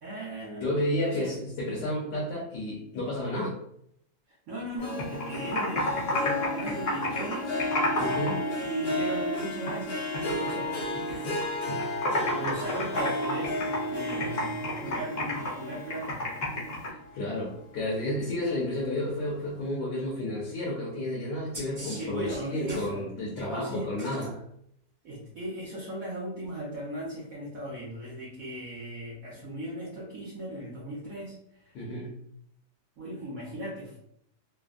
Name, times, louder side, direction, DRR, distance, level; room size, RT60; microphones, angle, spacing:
voice 1, 0.0-1.4 4.3-7.5 8.6-16.2 21.8-23.0 23.4-23.9 25.0-31.7 33.0-34.0, right 1 dB, 65° right, -5 dB, 0.9 m, -38 dB
voice 2, 0.6-3.5 8.0-8.4 11.7-11.8 16.8-24.4 31.7-32.2, left 1 dB, 70° left, -4 dB, 1.3 m, -31 dB
Harp, 4.8-17.5 18.0-18.4 18.8-18.9, left 1 dB, 85° left, 1.5 m, -33 dB
Computer keyboard, 4.8-8.3 8.6-9.8 10.1-11.4 11.7-16.9, left 1 dB, 50° left, 0.8 m, -31 dB
sound 1, 21.5-22.9 23.9-24.3 26.4-26.5, right 1 dB, 25° right, 0.5 m, -41 dB
3.3 x 2.0 x 2.4 m, 0.71 s
omnidirectional pair, 2.0 m